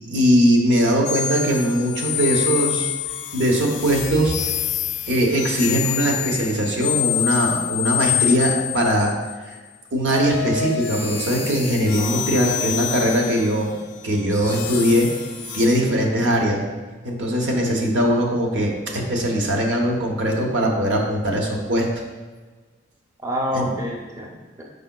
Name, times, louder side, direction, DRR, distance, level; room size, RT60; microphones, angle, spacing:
voice 1, 0.0-2.9 3.3-4.3 5.1-9.1 9.9-13.8 14.0-15.1 15.5-16.6 17.0-21.9 23.5-23.7, equal, 75° right, 0 dB, 0.8 m, -20 dB
sound 1, 1.0-9.3 10.0-15.8, left 10 dB, 85° left, 0.4 m, -27 dB
voice 2, 12.0-12.6 14.3-14.9 23.2-24.6, equal, 15° right, -1 dB, 0.5 m, -30 dB
4.9 x 4.4 x 2.2 m, 1.3 s
head